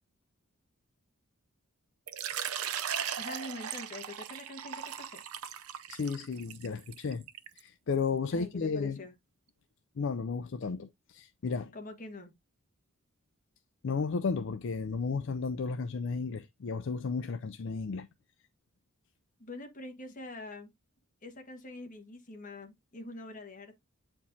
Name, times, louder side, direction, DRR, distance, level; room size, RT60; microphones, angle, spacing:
Water / Liquid, 2.1-7.6, right 9 dB, 85° right, 0.5 m, -38 dB
voice 1, 3.2-5.2 8.3-9.1 11.7-12.4 19.4-20.7 21.2-23.8, left 2 dB, 35° left, 1.4 m, -44 dB
voice 2, 5.9-7.3 7.6-9.0 10.0-11.7 13.8-18.1, left 5 dB, 55° left, 0.4 m, -33 dB
8.4 x 4.5 x 2.7 m
head